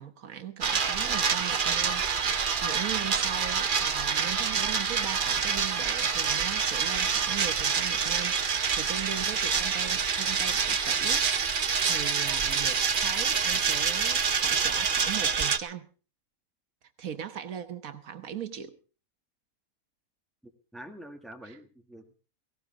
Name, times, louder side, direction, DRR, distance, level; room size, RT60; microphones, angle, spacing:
voice 1, 0.0-15.9 17.0-18.8 21.4-21.6, right 9 dB, 75° right, 1.5 m, -39 dB
sound 1, 0.6-15.6, right 6 dB, 45° right, 0.9 m, -27 dB
voice 2, 20.4-22.1, right 1 dB, ahead, 1.9 m, -46 dB
17.5 x 17.0 x 3.6 m
omnidirectional pair, 1.5 m